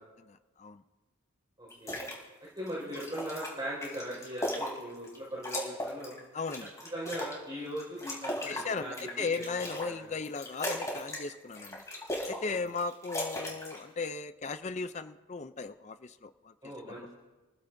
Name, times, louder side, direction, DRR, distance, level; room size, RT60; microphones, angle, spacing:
voice 1, 0.2-0.8 6.3-6.7 8.5-11.8 12.3-16.5 16.9-17.1, left 4 dB, 30° left, 11 dB, 0.4 m, -37 dB
voice 2, 1.6-2.0 2.6-6.2 6.9-9.1 9.5-10.0 16.6-17.1, equal, 20° right, -6 dB, 5.0 m, -39 dB
sound 1, 1.7-2.2 2.6-5.2 5.4-7.4 7.8-9.9 10.2-11.2 11.5-12.4 12.7-13.8, left 1 dB, 15° left, 3.2 m, -37 dB
28.5 x 15.0 x 2.7 m, 1.2 s
head